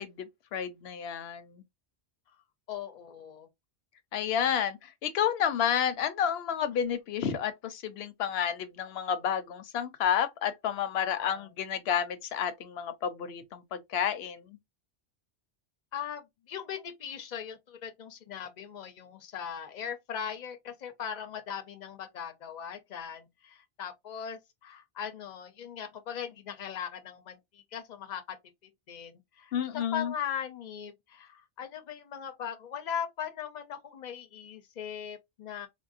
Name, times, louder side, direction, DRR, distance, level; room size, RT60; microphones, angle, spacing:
voice 1, 0.0-1.6 4.1-14.6 29.5-30.1, left 8 dB, 80° left, 0.8 m, -30 dB
voice 2, 2.7-3.5 11.0-11.5 15.9-28.4 28.9-35.7, left 8 dB, 50° left, 0.7 m, -39 dB
3.6 x 2.1 x 2.4 m
omnidirectional pair, 1.0 m